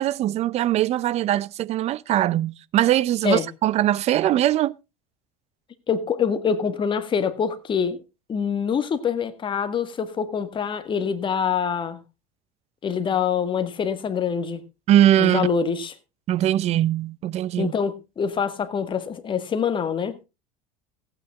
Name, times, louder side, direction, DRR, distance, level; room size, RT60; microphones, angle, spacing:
voice 1, 0.0-4.8 14.9-15.5 16.3-17.7, right 12 dB, 40° right, 0.6 m, -21 dB
voice 2, 5.9-8.0 8.3-12.0 12.8-14.6 15.2-15.9 17.6-20.2, left 7 dB, 30° left, 1.7 m, -25 dB
15.5 x 9.0 x 3.6 m
supercardioid pair, 100°, 16 cm